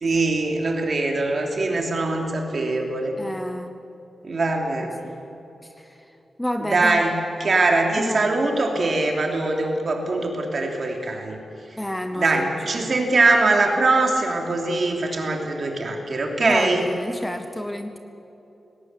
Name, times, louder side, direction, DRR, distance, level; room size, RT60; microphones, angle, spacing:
voice 1, 0.0-3.1 4.2-4.9 6.6-11.4 12.2-16.8, right 3 dB, 40° right, 1 dB, 3.0 m, -22 dB
voice 2, 3.2-3.8 4.8-5.2 5.6-7.0 8.0-8.3 11.8-12.9 16.4-18.0, left 1 dB, 5° left, 7 dB, 0.8 m, -30 dB
20.0 x 18.5 x 8.3 m, 3.0 s
wide cardioid pair, 170°, 0 cm